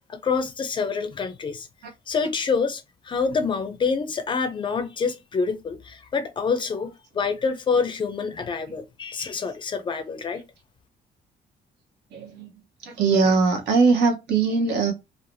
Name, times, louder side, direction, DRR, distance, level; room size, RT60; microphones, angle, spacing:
voice 1, 0.2-1.7 2.1-10.4, left 5 dB, 30° left, 0.4 m, -27 dB
voice 2, 12.1-12.5 12.8-14.9, right 4 dB, 85° right, 0.9 m, -21 dB
3.2 x 2.0 x 2.6 m
cardioid pair, 160°, 17 cm